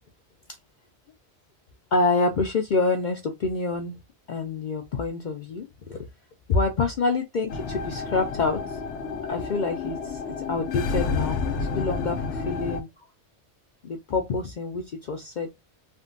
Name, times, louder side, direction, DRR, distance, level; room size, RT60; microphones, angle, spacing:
voice 1, 1.9-4.0 4.3-6.1 6.5-8.8 9.3-12.9 13.8-15.5, left 3 dB, 60° left, 0.5 m, -27 dB
sound 1, 7.5-12.8, left 4 dB, 90° left, 0.9 m, -30 dB
3.5 x 2.2 x 2.4 m
omnidirectional pair, 1.2 m